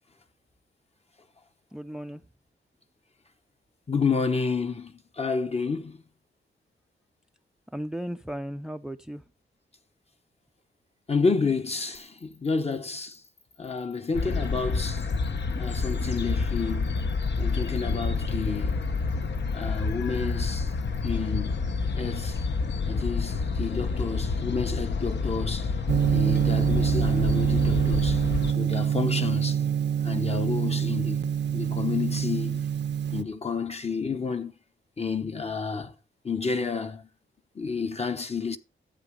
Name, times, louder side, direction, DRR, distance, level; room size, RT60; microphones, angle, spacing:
voice 1, 1.7-2.2 7.7-9.2, equal, 5° right, 0.5 m, -35 dB
voice 2, 3.9-6.0 11.1-13.2 13.6-15.1 15.6-17.1 17.4-18.8 19.5-20.7 21.0-21.6 22.0-22.4 22.9-25.8 26.1-28.2 28.5-29.6 30.0-31.2 31.5-32.6 33.1-34.5 35.0-35.9 36.2-37.1 37.5-38.6, left 4 dB, 30° left, 1.0 m, -30 dB
sound 1, 11.9-21.1, left 5 dB, 80° left, 4.5 m, -59 dB
sound 2, 14.1-28.5, left 4 dB, 60° left, 1.0 m, -28 dB
Gong, 25.9-33.2, right 8 dB, 60° right, 0.6 m, -25 dB
12.0 x 8.4 x 5.1 m
wide cardioid pair, 120°, 20 cm